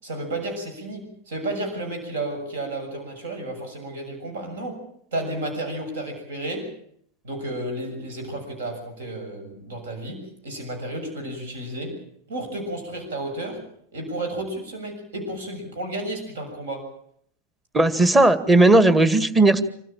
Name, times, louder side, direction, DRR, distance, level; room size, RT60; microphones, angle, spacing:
voice 1, 0.0-4.8 5.1-6.7 7.2-12.0 12.3-13.6 13.9-16.9, right 1 dB, 70° right, 5 dB, 6.9 m, -32 dB
voice 2, 17.7-19.6, right 2 dB, 15° right, 10 dB, 2.0 m, -16 dB
26.5 x 14.0 x 8.9 m, 0.66 s
hypercardioid pair, 95°, 0 cm